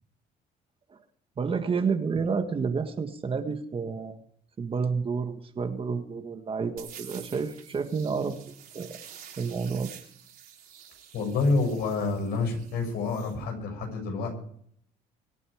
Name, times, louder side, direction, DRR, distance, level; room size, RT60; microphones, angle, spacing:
voice 1, 1.4-4.2 4.6-8.4 8.7-9.0 9.4-9.9, right 5 dB, 30° right, 7 dB, 1.7 m, -30 dB
sound 1, 6.8-13.4, right 9 dB, 60° right, 3.8 m, -49 dB
voice 2, 11.1-14.3, left 3 dB, 70° left, 2 dB, 6.5 m, -28 dB
24.0 x 9.3 x 5.1 m, 0.64 s
cardioid pair, 110°, 17 cm